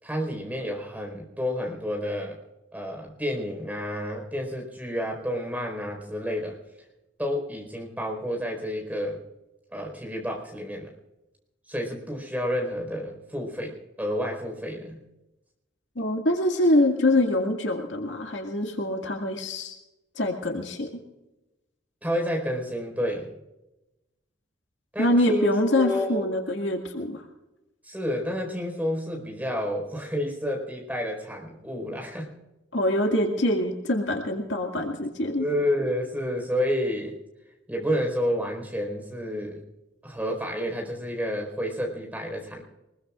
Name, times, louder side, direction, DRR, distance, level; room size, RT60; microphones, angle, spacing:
voice 1, 0.0-2.4 2.7-6.6 7.2-9.2 9.7-10.9 11.7-15.0 22.0-23.3 24.9-26.3 27.8-32.3 35.4-37.1 37.7-39.6 40.0-42.6, equal, 10° right, 1 dB, 4.6 m, -30 dB
voice 2, 16.0-19.8 20.2-20.9 25.0-27.2 32.7-35.5, left 1 dB, 70° left, 3 dB, 2.1 m, -24 dB
24.0 x 21.5 x 2.5 m, 0.97 s
head